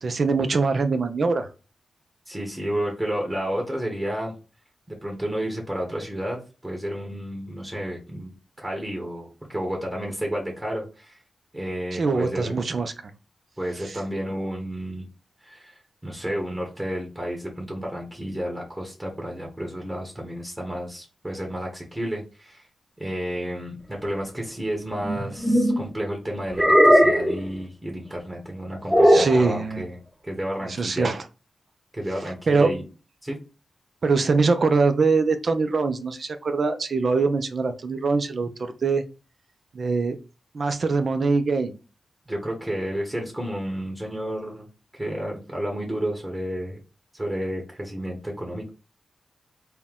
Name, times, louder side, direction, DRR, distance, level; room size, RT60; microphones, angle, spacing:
voice 1, 0.0-1.5 11.9-12.9 29.1-29.8 30.8-31.2 32.5-32.7 34.0-38.5 38.8-39.0 39.7-40.2 40.5-41.8, right 4 dB, 60° right, 8 dB, 0.6 m, -23 dB
voice 2, 2.3-4.4 4.9-11.2 11.5-12.6 13.6-15.1 15.4-22.7 23.0-29.9 30.2-31.1 31.9-32.8 33.2-33.4 42.3-44.7 44.9-46.8 47.1-48.7, equal, 20° right, 0 dB, 1.4 m, -31 dB
sound 1, 25.0-25.8 26.5-27.4 28.9-29.4, equal, ahead, 0.8 m, -17 dB
4.3 x 2.3 x 3.7 m, 0.33 s
cardioid pair, 60°, 0 cm